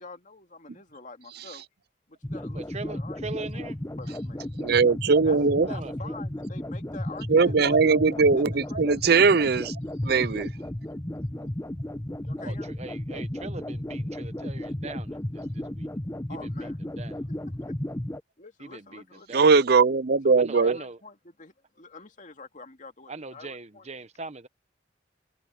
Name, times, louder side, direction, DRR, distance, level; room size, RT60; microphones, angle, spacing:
voice 1, 0.0-1.6 2.1-2.6 2.9-3.7 3.9-4.4 5.2-5.4 5.7-9.3 12.2-12.8 16.3-16.8 18.4-19.3 20.2-23.9, left 3 dB, 45° left, 2.4 m, -46 dB
sound 1, 2.2-18.2, left 1 dB, 15° left, 1.0 m, -34 dB
voice 2, 2.5-3.8 5.6-6.1 12.4-15.9 16.3-17.2 18.6-19.5 20.4-21.0 23.1-24.5, right 3 dB, 40° right, 1.0 m, -41 dB
voice 3, 4.6-5.7 7.3-9.7 10.0-10.5 19.3-20.8, right 4 dB, 65° right, 0.6 m, -20 dB
head